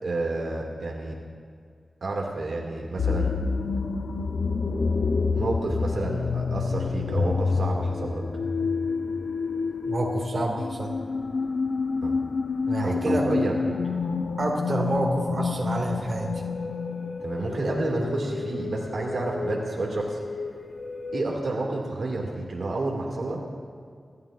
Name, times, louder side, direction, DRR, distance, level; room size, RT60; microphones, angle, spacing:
voice 1, 0.0-1.2 2.0-3.3 5.3-8.2 12.0-12.2 12.8-13.8 17.2-20.2 21.1-23.4, right 2 dB, 75° right, -1 dB, 2.1 m, -30 dB
sound 1, 3.0-21.4, left 4 dB, 80° left, 0.7 m, -28 dB
voice 2, 9.8-10.9 12.7-13.3 14.4-16.3, right 2 dB, 50° right, -1 dB, 2.1 m, -28 dB
26.0 x 12.5 x 2.5 m, 2.2 s
wide cardioid pair, 100°, 0 cm